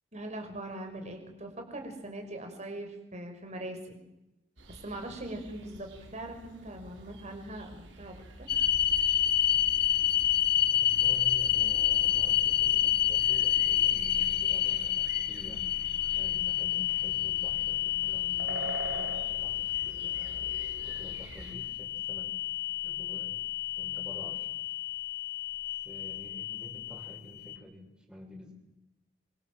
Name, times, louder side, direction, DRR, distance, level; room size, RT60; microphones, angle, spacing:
voice 1, 0.1-4.0 4.8-8.5, right 1 dB, 40° right, 4 dB, 5.8 m, -41 dB
sound 1, 4.6-21.5, right 2 dB, 85° right, 5.6 m, -47 dB
sound 2, 8.5-27.6, left 11 dB, 55° left, 1.3 m, -29 dB
voice 2, 10.7-15.6 16.1-20.5 20.8-22.3 22.8-23.4 23.8-24.6 25.8-28.5, left 1 dB, 5° right, 0 dB, 6.7 m, -48 dB
27.5 x 25.0 x 7.6 m, 0.94 s
head